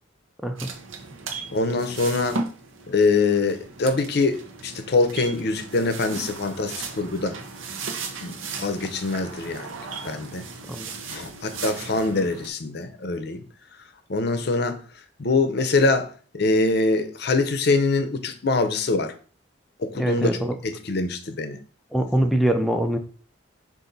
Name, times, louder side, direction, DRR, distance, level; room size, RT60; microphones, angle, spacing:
sound 1, 0.6-12.5, right 4 dB, 85° right, 0.7 m, -36 dB
voice 1, 1.5-2.4 2.9-7.4 8.2-9.7 10.0-10.5 11.1-13.4 14.1-14.8 15.2-19.1 19.8-21.6, left 3 dB, 55° left, 0.6 m, -24 dB
voice 2, 20.0-20.6 21.9-23.0, right 1 dB, ahead, 0.4 m, -23 dB
5.2 x 2.6 x 3.8 m
head